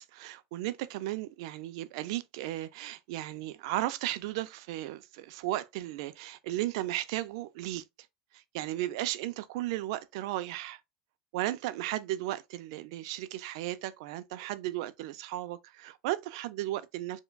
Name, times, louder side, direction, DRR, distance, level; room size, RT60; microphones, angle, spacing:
voice 1, 0.0-7.8 8.3-10.8 11.3-17.2, right 15 dB, 65° right, 0.4 m, -35 dB
4.5 x 2.2 x 2.3 m
supercardioid pair, 150°, 3 cm